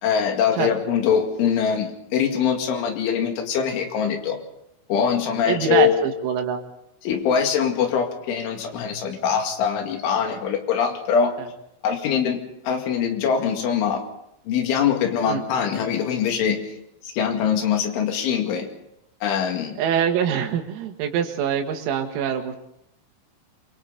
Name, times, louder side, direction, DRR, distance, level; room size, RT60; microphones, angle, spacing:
voice 1, 0.0-4.4 4.9-5.9 7.0-11.4 11.8-12.4 12.6-14.0 14.5-16.7 17.1-18.7 19.2-19.8, left 7 dB, 70° left, 4 dB, 4.4 m, -23 dB
voice 2, 5.5-6.6 11.4-11.5 15.3-15.4 19.8-22.6, right 8 dB, 90° right, 5 dB, 4.5 m, -24 dB
27.0 x 23.5 x 4.1 m, 0.81 s
omnidirectional pair, 6.0 m